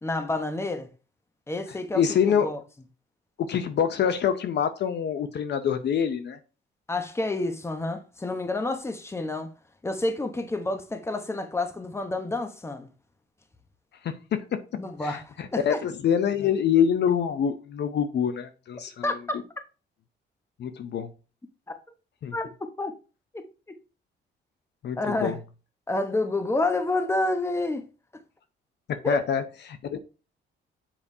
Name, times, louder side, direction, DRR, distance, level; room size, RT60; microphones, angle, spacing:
voice 1, 0.0-0.9 1.5-2.6 6.9-9.5 9.8-12.9 14.8-15.8 19.0-19.4 22.3-22.5 22.8-22.9 23.3-23.5 25.0-25.4 25.9-27.8 29.0-29.2, left 2 dB, 15° left, 1.0 m, -29 dB
voice 2, 1.9-2.5 3.4-6.4 14.0-14.6 15.0-19.1 20.6-21.1 22.2-22.3 24.8-25.4 28.9-30.0, left 8 dB, 60° left, 0.6 m, -26 dB
7.2 x 5.0 x 2.7 m
cardioid pair, 90°, 20 cm